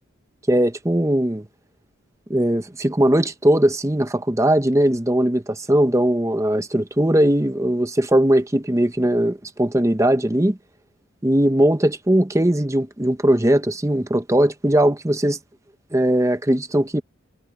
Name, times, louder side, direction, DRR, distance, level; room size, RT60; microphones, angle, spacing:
voice 1, 0.5-1.5 2.3-10.6 11.2-15.4 15.9-17.0, right 1 dB, 15° right, 0.8 m, -19 dB
head